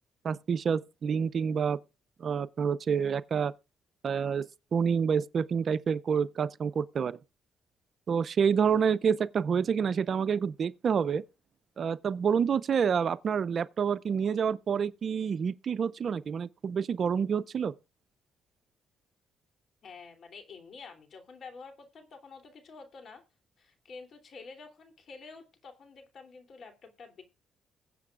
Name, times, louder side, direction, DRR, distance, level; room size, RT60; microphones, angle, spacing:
voice 1, 0.2-1.8 2.2-3.5 4.0-7.2 8.1-11.2 11.8-17.7, right 7 dB, 50° right, 0.5 m, -28 dB
voice 2, 19.8-23.2 23.6-27.2, left 4 dB, 55° left, 3.0 m, -49 dB
21.5 x 7.6 x 2.4 m
cardioid pair, 90°, 0 cm